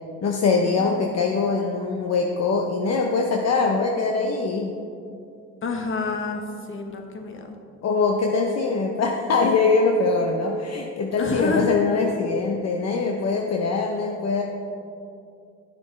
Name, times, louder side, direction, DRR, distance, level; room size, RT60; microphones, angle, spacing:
voice 1, 0.2-4.8 7.8-14.4, left 4 dB, 60° left, 2 dB, 0.8 m, -22 dB
voice 2, 5.6-6.4 6.7-7.5 11.2-11.8, left 3 dB, 40° left, 4 dB, 1.1 m, -28 dB
11.5 x 6.8 x 3.3 m, 2.5 s
cardioid pair, 90°, 30 cm